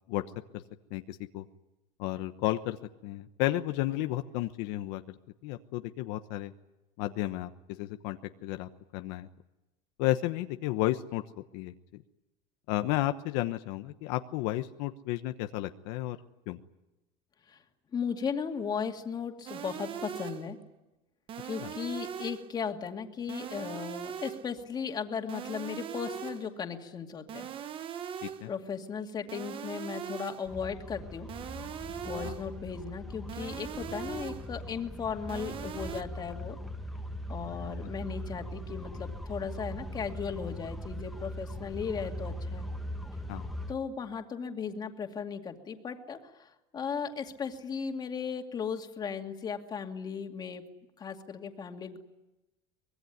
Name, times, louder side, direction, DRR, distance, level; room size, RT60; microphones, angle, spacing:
voice 1, 0.9-1.4 2.0-2.8 3.0-5.2 5.4-6.5 7.0-9.3 10.0-11.2 11.5-12.0 12.7-16.2 16.5-16.6 21.6-21.7 28.2-28.5 32.2-32.3 43.3-43.5, left 16 dB, 75° left, 8 dB, 1.1 m, -32 dB
voice 2, 17.9-20.6 21.4-27.5 28.5-31.3 32.0-36.6 37.3-42.7 43.7-50.6 51.0-52.0, left 6 dB, 25° left, 4 dB, 2.5 m, -36 dB
sound 1, 19.5-20.6 21.3-22.6 23.3-24.6 25.3-26.6 27.3-28.6 29.3-30.6 31.3-32.6 33.3-34.6 35.3-36.0, right 8 dB, 35° right, 1.2 m, -40 dB
sound 2, 30.5-43.7, equal, ahead, 1.5 m, -40 dB
24.5 x 20.5 x 9.4 m, 1.0 s
cardioid pair, 145°, 15 cm